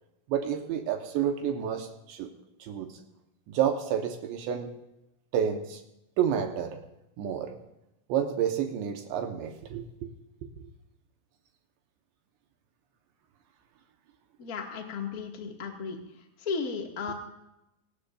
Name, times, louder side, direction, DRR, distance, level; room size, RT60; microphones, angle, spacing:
voice 1, 0.3-2.3 2.6-2.9 3.5-4.7 5.3-5.8 6.2-6.8 7.2-7.6 8.1-10.1 10.4-10.7 17.1-17.2, right 9 dB, 75° right, 4 dB, 3.3 m, -30 dB
voice 2, 14.4-16.0 16.4-17.1, left 5 dB, 85° left, 1 dB, 0.7 m, -34 dB
24.5 x 19.0 x 2.6 m, 0.87 s
omnidirectional pair, 5.4 m